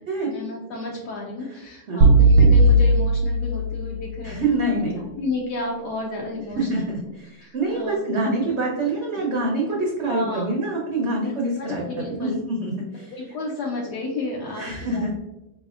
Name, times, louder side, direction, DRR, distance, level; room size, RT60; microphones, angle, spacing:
voice 1, 0.3-4.8 5.2-7.0 7.4-8.0 8.4-8.5 10.1-10.5 11.2-12.4 13.1-15.0, left 2 dB, 75° left, -2 dB, 1.1 m, -32 dB
sound 1, 2.0-4.2, right 2 dB, 85° right, 1.3 m, -16 dB
voice 2, 4.2-5.2 6.6-13.1 14.6-15.1, right 2 dB, 60° right, -2 dB, 0.7 m, -26 dB
4.1 x 3.2 x 2.4 m, 1.0 s
omnidirectional pair, 1.8 m